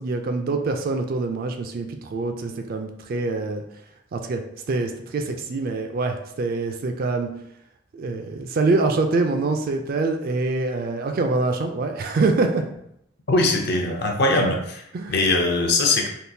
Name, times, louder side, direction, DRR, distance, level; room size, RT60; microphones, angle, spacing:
voice 1, 0.0-3.6 4.1-7.3 7.9-12.6 14.9-15.2, right 3 dB, 50° right, 5 dB, 0.3 m, -25 dB
voice 2, 13.3-14.8 15.1-16.1, left 2 dB, 60° left, 2 dB, 0.6 m, -21 dB
3.5 x 2.4 x 2.7 m, 0.75 s
head